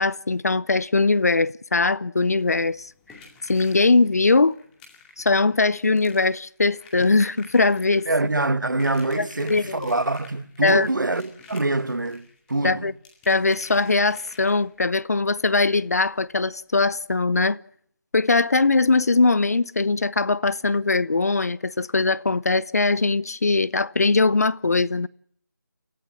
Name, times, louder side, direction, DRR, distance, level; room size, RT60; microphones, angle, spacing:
voice 1, 0.0-2.9 3.5-4.5 5.2-8.1 9.2-9.9 10.6-10.9 12.6-12.9 13.3-17.6 18.1-25.1, left 3 dB, 50° left, 0.8 m, -21 dB
sound 1, 2.4-14.9 16.4-16.5 16.7-16.9 17.3-17.4, left 4 dB, 5° left, 2.3 m, -50 dB
voice 2, 8.1-12.9, right 2 dB, 70° right, 1.7 m, -25 dB
30.0 x 14.0 x 7.5 m
figure-of-eight pair, 165°, 11 cm